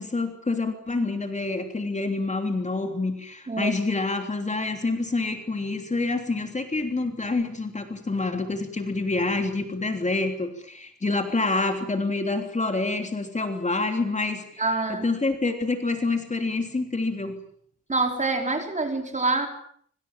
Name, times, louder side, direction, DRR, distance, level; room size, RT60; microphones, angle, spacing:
voice 1, 0.0-14.6 14.9-17.4, left 3 dB, 25° left, 6 dB, 3.3 m, -27 dB
voice 2, 14.6-15.0 17.9-19.5, right 3 dB, 25° right, 5 dB, 4.9 m, -26 dB
26.0 x 26.0 x 7.5 m, 0.63 s
wide cardioid pair, 155°, 29 cm